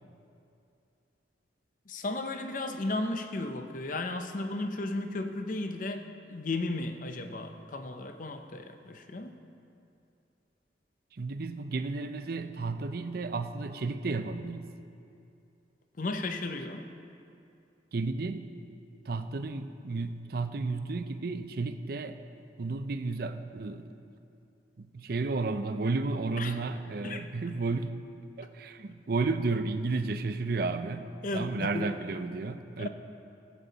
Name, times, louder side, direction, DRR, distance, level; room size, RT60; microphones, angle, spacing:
voice 1, 1.9-6.0 6.3-9.3 16.0-16.8 26.4-26.5 27.0-27.3 31.2-31.9 32.8-32.9, left 2 dB, 45° left, 7 dB, 0.6 m, -34 dB
voice 2, 11.1-14.7 17.9-18.5 19.1-22.2 22.6-23.9 24.8-27.9 28.4-32.9, right 3 dB, 55° right, 9 dB, 0.5 m, -32 dB
16.0 x 8.4 x 4.0 m, 2.6 s
head